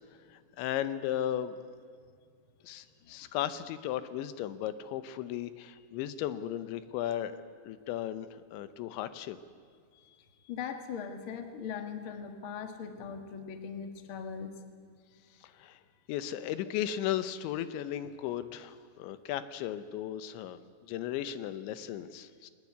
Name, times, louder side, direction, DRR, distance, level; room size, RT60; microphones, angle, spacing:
voice 1, 0.3-1.6 2.6-7.4 7.6-9.4 15.4-15.8 16.1-22.5, left 11 dB, 80° left, 13 dB, 3.1 m, -36 dB
voice 2, 10.5-14.5, left 7 dB, 55° left, 7 dB, 1.5 m, -40 dB
22.0 x 19.5 x 9.6 m, 2.1 s
omnidirectional pair, 5.4 m